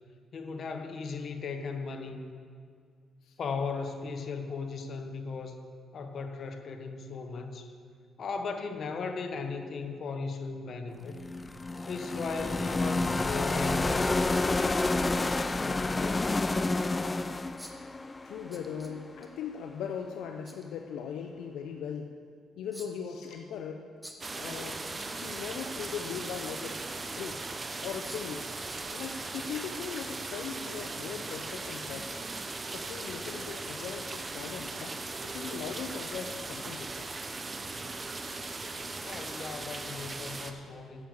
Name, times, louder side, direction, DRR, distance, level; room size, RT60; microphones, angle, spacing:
voice 1, 0.3-2.2 3.4-5.6 5.9-7.7 8.2-11.1 11.9-16.3 39.0-41.1, left 4 dB, 55° left, 6 dB, 1.1 m, -37 dB
sound 1, 11.1-19.1, left 2 dB, 20° left, 0.4 m, -29 dB
sound 2, 17.6-18.0 18.5-19.3 20.4-20.7 22.7-23.2 24.0-24.8 25.1-25.4 25.7-26.4 27.1-27.2 28.0-28.4 28.7-29.6 30.1-30.2 30.6-30.7, equal, 5° right, 1.3 m, -50 dB
voice 2, 18.2-22.1 22.6-23.8 24.3-24.8 25.1-26.8 27.2-27.4 27.8-28.5 28.9-32.1 32.7-35.0 35.2-37.1 40.3-40.6, left 7 dB, 80° left, 4 dB, 0.6 m, -39 dB
sound 3, 24.2-40.5, right 3 dB, 30° right, 0.9 m, -38 dB
9.9 x 7.7 x 7.1 m, 2.1 s
cardioid pair, 90°, 0 cm